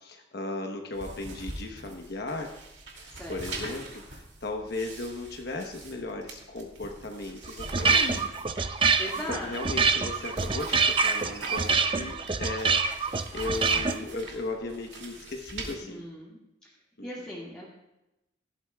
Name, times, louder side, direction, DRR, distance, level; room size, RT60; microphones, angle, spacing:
voice 1, 0.0-2.5 2.9-8.3 9.3-16.0 17.0-17.3, left 2 dB, 55° left, 2 dB, 1.1 m, -36 dB
sound 1, 0.9-15.7, right 2 dB, 60° right, 2.6 m, -43 dB
sound 2, 7.4-14.0, right 4 dB, 25° right, 0.5 m, -26 dB
voice 2, 9.0-9.7 15.7-16.4 17.0-17.6, equal, 5° left, -7 dB, 2.0 m, -39 dB
17.5 x 11.5 x 2.4 m, 0.93 s
head